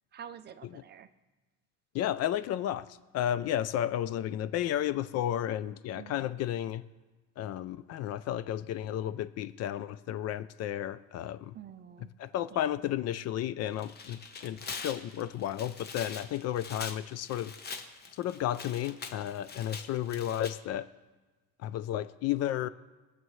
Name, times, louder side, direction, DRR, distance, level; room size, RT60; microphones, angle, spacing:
voice 1, 0.1-1.1 5.9-6.3 11.5-12.1 12.5-12.8, right 9 dB, 30° right, 11 dB, 0.5 m, -48 dB
voice 2, 1.9-2.9 3.1-6.8 7.4-11.5 12.2-14.6 14.8-17.5 18.2-20.9 21.6-22.7, left 11 dB, 45° left, 15 dB, 0.5 m, -32 dB
Tearing, 13.6-20.5, left 5 dB, 30° left, 1.1 m, -43 dB
22.0 x 7.6 x 3.2 m, 1.2 s
cardioid pair, 135°, 35 cm